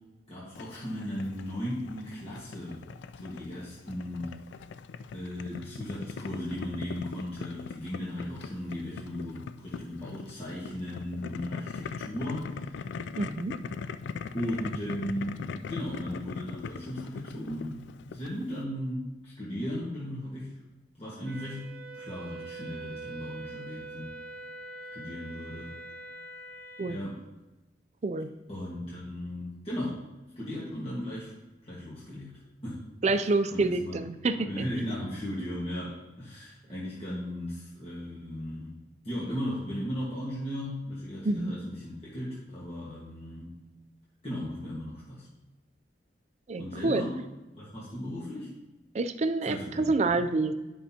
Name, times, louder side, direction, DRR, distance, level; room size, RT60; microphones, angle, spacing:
voice 1, 0.3-2.8 3.1-4.4 5.1-12.8 14.3-20.5 21.0-24.2 24.9-25.8 26.8-27.2 28.5-30.0 30.3-31.3 31.6-32.3 32.6-33.2 33.5-34.0 34.3-38.8 39.0-43.6 44.2-45.3 46.6-47.2 47.5-48.5 49.4-50.1, equal, 35° left, -8 dB, 1.5 m, -36 dB
Boiling, 0.5-18.6, left 5 dB, 80° left, 0.3 m, -41 dB
voice 2, 13.2-13.5 26.8-27.0 28.0-28.3 33.0-34.5 41.2-41.5 46.5-47.0 48.9-50.5, right 3 dB, 40° right, 11 dB, 0.4 m, -27 dB
Wind instrument woodwind instrument, 21.3-27.0, right 3 dB, 55° right, 0.9 m, -43 dB
11.0 x 5.5 x 2.8 m, 1.1 s
head